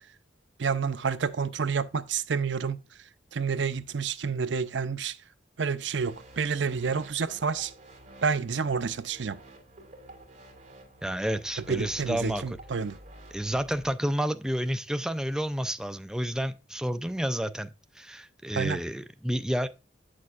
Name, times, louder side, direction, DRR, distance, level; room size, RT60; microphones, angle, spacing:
voice 1, 0.6-2.8 3.3-5.2 5.6-7.7 8.2-9.4 11.7-13.0 18.6-18.8, right 5 dB, 65° right, 0.6 m, -29 dB
sound 1, 6.0-13.9, right 1 dB, 40° right, 2.3 m, -50 dB
voice 2, 11.0-12.6 13.3-17.7 18.0-19.7, equal, 5° right, 0.4 m, -30 dB
9.4 x 6.4 x 2.5 m
head